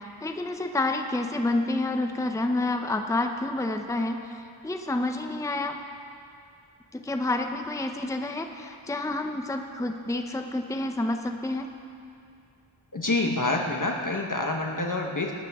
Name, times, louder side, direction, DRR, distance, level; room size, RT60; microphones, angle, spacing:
voice 1, 0.2-5.8 6.9-11.7, left 2 dB, 5° left, 5 dB, 0.7 m, -29 dB
voice 2, 12.9-15.3, left 2 dB, 40° left, 1 dB, 1.3 m, -27 dB
19.0 x 11.5 x 3.6 m, 2.4 s
wide cardioid pair, 45°, 50 cm